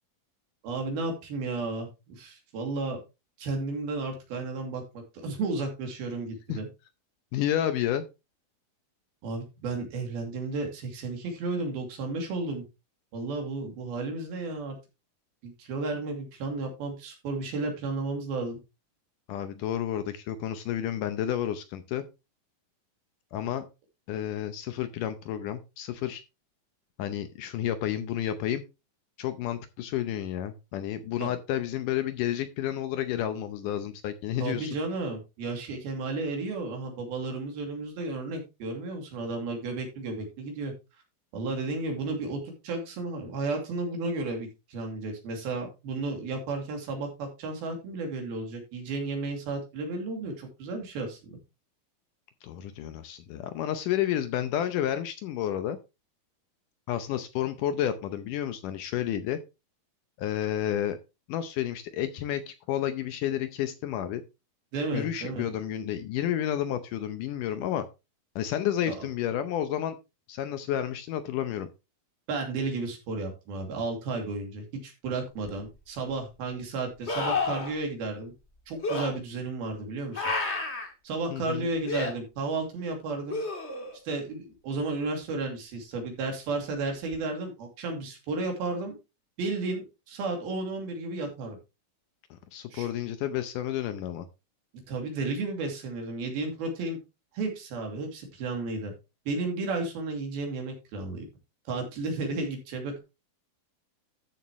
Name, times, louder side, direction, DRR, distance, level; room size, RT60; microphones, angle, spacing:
voice 1, 0.6-3.0 3.4-4.8 5.2-6.7 9.2-12.6 13.1-14.8 15.4-18.6 31.2-31.3 34.4-40.7 41.3-51.4 64.7-65.5 68.9-69.1 72.3-78.3 78.7-80.3 81.0-83.4 84.1-88.9 89.4-91.6 92.7-92.9 94.9-97.0 97.3-98.9 99.3-101.3 101.7-103.0, right 3 dB, 80° right, 3 dB, 4.4 m, -33 dB
voice 2, 7.3-8.1 19.3-22.0 23.3-23.7 24.1-26.2 27.0-28.6 29.2-34.8 52.4-55.8 56.9-59.4 60.2-61.0 61.3-64.2 64.9-67.9 68.4-70.0 70.3-71.7 81.3-81.7 92.5-94.2, left 11 dB, 75° left, 10 dB, 2.0 m, -30 dB
sound 1, 75.5-75.6 77.1-77.7 78.8-79.1 80.1-80.9 81.9-82.1 83.3-84.0 87.1-87.2, left 3 dB, 30° left, 1.3 m, -30 dB
13.0 x 7.1 x 3.0 m, 0.27 s
omnidirectional pair, 4.3 m